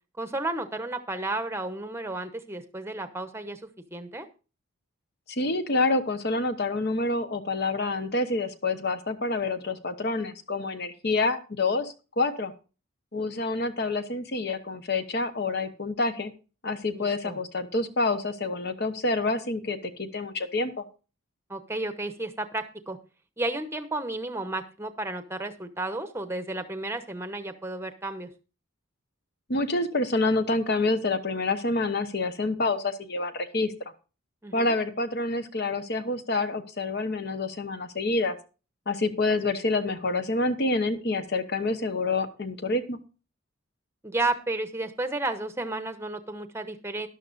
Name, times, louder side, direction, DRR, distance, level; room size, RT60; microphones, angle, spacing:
voice 1, 0.2-3.6 3.9-4.3 16.9-17.4 21.5-23.0 23.4-28.3 34.4-34.7 44.0-47.1, right 2 dB, 10° right, 9 dB, 0.9 m, -32 dB
voice 2, 5.3-12.5 13.1-16.3 16.6-20.8 29.5-33.7 34.5-38.4 38.9-43.0, left 2 dB, 50° left, 10 dB, 1.0 m, -27 dB
13.5 x 11.0 x 2.5 m, 0.33 s
head